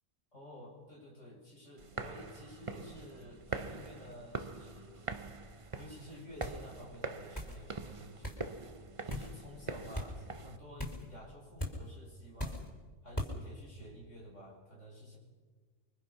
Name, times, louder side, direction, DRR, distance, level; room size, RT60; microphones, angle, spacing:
voice 1, 0.3-5.2 5.8-8.5 9.0-12.7 13.0-15.2, equal, 80° left, -3 dB, 8.5 m, -52 dB
sound 1, 1.8-10.6, right 3 dB, 30° right, 0.9 m, -44 dB
sound 2, 6.4-6.6 7.3-7.6 8.2-8.4 9.1-9.3 9.9-10.1 10.8-11.1 11.6-11.8 12.4-12.7 13.2-13.3, left 1 dB, 20° left, 4.3 m, -38 dB
29.0 x 23.5 x 5.8 m, 1.4 s
omnidirectional pair, 1.3 m